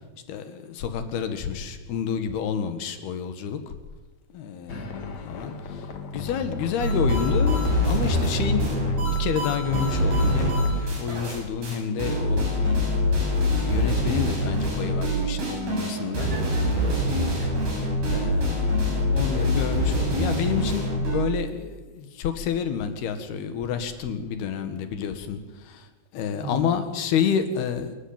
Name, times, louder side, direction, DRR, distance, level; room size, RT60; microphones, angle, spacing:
voice 1, 0.3-3.6 4.3-4.8 5.3-5.8 6.1-13.1 13.7-16.3 18.1-25.9 26.1-28.0, left 7 dB, 85° left, 9 dB, 3.7 m, -29 dB
sound 1, 4.7-10.8, left 4 dB, 50° left, 2.9 m, -36 dB
sound 2, 6.8-11.4 11.6-11.7 12.0-21.3, left 1 dB, 85° right, 9.6 m, -24 dB
voice 2, 16.1-17.5 18.9-19.7 26.3-26.7, right 1 dB, 45° right, 0 dB, 7.9 m, -38 dB
27.0 x 14.0 x 8.8 m, 1.2 s
omnidirectional pair, 4.4 m